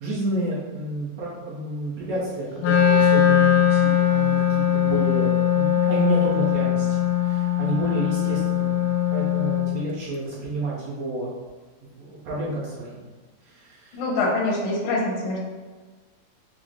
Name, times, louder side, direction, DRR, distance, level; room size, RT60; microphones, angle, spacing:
voice 1, 0.0-6.9 7.2-11.3 11.9-13.0 13.5-14.0, right 2 dB, 70° right, -7 dB, 1.6 m, -30 dB
Wind instrument woodwind instrument, 2.6-9.8, left 10 dB, 90° left, 2.2 m, -20 dB
voice 2, 13.9-15.4, left 2 dB, 65° left, -4 dB, 1.5 m, -24 dB
6.1 x 2.1 x 3.8 m, 1.4 s
omnidirectional pair, 3.7 m